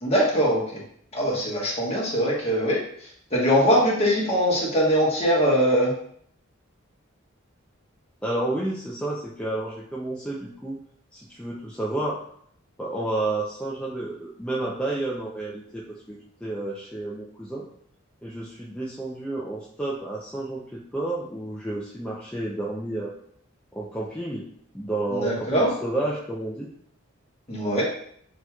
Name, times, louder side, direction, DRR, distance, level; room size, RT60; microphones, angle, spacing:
voice 1, 0.0-0.6 1.1-2.8 3.3-5.9 25.1-25.7 27.5-27.9, equal, 30° left, -4 dB, 1.3 m, -22 dB
voice 2, 8.2-10.8 11.1-12.2 12.8-17.6 18.2-23.1 23.7-24.4 24.7-26.7, right 2 dB, 5° left, -6 dB, 0.5 m, -31 dB
6.5 x 3.0 x 2.3 m, 0.64 s
head